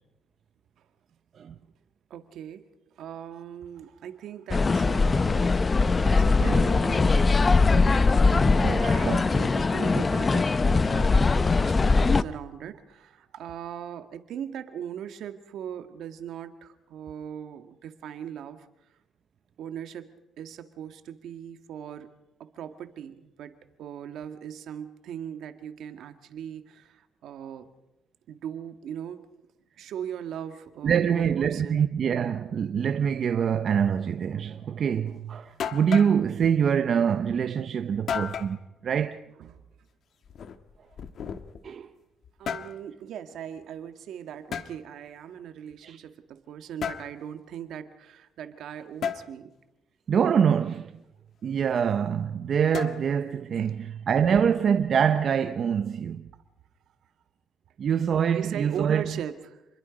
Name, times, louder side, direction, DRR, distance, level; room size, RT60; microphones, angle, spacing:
voice 1, 2.1-2.7 3.0-5.7 6.0-7.4 7.8-8.3 8.8-18.7 19.6-20.1 20.4-22.1 22.4-27.7 28.3-29.4 29.8-31.8 39.4-39.6 42.4-49.5 53.5-53.8 58.3-59.6, right 9 dB, 75° right, 1.8 m, -39 dB
sound 1, 4.5-12.2, left 3 dB, 30° left, 0.7 m, -21 dB
voice 2, 6.4-6.7 8.3-9.2 9.9-10.0 30.8-39.2 41.6-41.9 45.8-46.0 50.1-50.9 51.4-56.3 57.8-59.0, right 7 dB, 55° right, 0.9 m, -25 dB
sound 2, 35.1-35.2 35.6-36.2 38.1-38.6 40.2-41.7 42.2-42.8 44.5-44.7 46.8-47.1 49.0-49.2 52.7-53.3, left 7 dB, 65° left, 1.5 m, -33 dB
28.0 x 21.5 x 5.3 m
cardioid pair, 90°, 0 cm